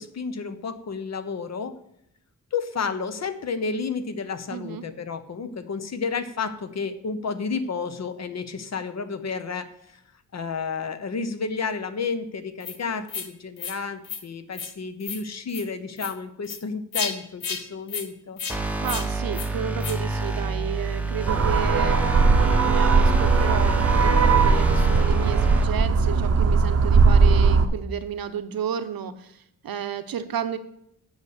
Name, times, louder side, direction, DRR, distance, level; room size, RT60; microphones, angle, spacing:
voice 1, 0.0-1.7 2.5-10.0 10.3-18.4, left 5 dB, 50° left, 11 dB, 0.8 m, -31 dB
voice 2, 4.5-4.8 18.8-30.6, right 9 dB, 80° right, 10 dB, 0.8 m, -32 dB
sound 1, 12.6-12.8 13.1-13.3 13.6-13.8 14.0-14.2 14.5-14.7 15.0-15.2 15.5-15.6 16.0-16.1 16.4-16.6 16.9-17.1 17.4-17.6 17.9-18.1 18.4-18.6 18.8-19.1 19.3-19.5 19.8-20.0, left 6 dB, 70° left, 1.1 m, -32 dB
sound 2, 18.5-25.6, right 2 dB, 5° right, 0.8 m, -29 dB
sound 3, 21.3-27.7, right 4 dB, 45° right, 0.7 m, -19 dB
8.1 x 6.6 x 6.6 m, 0.76 s
wide cardioid pair, 135°, 35 cm